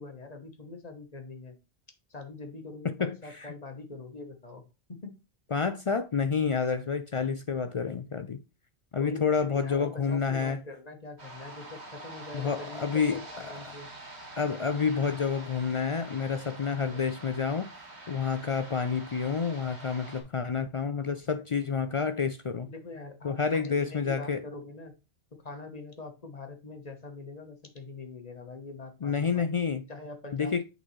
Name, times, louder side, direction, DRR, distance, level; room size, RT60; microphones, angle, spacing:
voice 1, 0.0-1.6 2.1-5.1 9.0-13.9 22.7-25.0 25.3-29.5 29.9-30.6, left 3 dB, 40° left, 1.2 m, -44 dB
voice 2, 3.0-3.5 5.5-8.4 8.9-10.6 12.3-13.2 14.4-17.7 18.1-22.7 23.2-24.4 29.0-29.8 30.3-30.6, left 5 dB, 60° left, 0.3 m, -29 dB
sound 1, 11.2-20.2, right 2 dB, 70° right, 2.0 m, -46 dB
8.5 x 4.0 x 3.1 m
omnidirectional pair, 1.1 m